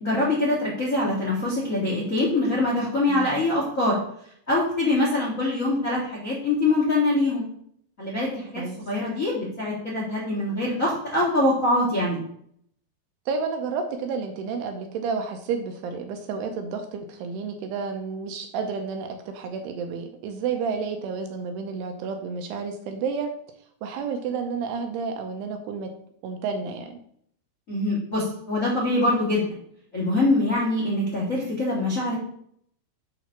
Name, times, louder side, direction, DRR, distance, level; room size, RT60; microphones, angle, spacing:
voice 1, 0.0-4.0 4.5-7.5 8.0-12.2 27.7-29.4 29.9-32.1, left 2 dB, 45° left, -5 dB, 1.0 m, -24 dB
voice 2, 3.1-3.4 8.6-8.8 13.3-23.3 23.8-25.9 26.2-27.0, right 5 dB, 80° right, 5 dB, 2.5 m, -31 dB
8.3 x 4.0 x 5.8 m, 0.66 s
omnidirectional pair, 5.1 m